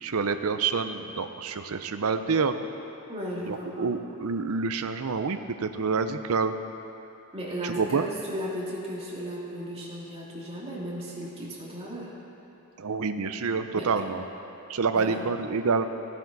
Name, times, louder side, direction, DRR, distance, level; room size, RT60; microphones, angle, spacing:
voice 1, 0.0-2.6 3.4-6.5 7.6-8.1 12.8-14.2 14.7-15.9, right 5 dB, 70° right, 9 dB, 0.6 m, -27 dB
voice 2, 3.1-3.9 7.3-12.1 13.7-13.9 14.9-15.2, equal, 25° right, -5 dB, 2.3 m, -35 dB
16.5 x 8.9 x 4.0 m, 3.0 s
head